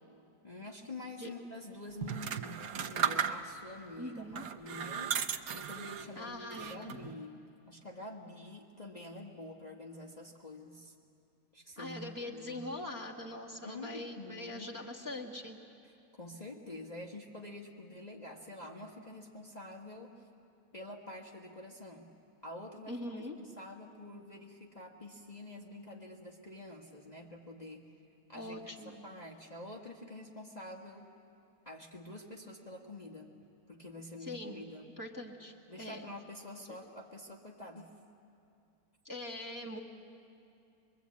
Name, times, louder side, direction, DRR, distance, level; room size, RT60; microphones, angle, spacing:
voice 1, 0.4-7.4 7.7-10.9 11.5-12.7 13.6-14.7 16.1-20.2 20.7-22.1 22.4-27.9 28.3-31.1 31.6-33.3 33.7-34.9 35.7-37.9 39.7-39.8, left 1 dB, 30° left, -2 dB, 1.4 m, -47 dB
sound 1, 2.0-3.7 4.3-6.1 6.5-7.1, right 7 dB, 75° right, 1.2 m, -35 dB
voice 2, 4.0-4.5 6.1-7.0 11.8-15.6 22.9-23.3 28.3-29.1 34.2-34.6 35.0-36.1 36.7-36.8 39.0-39.8, left 1 dB, 15° right, -2 dB, 1.5 m, -42 dB
24.0 x 22.5 x 8.4 m, 2.5 s
omnidirectional pair, 1.6 m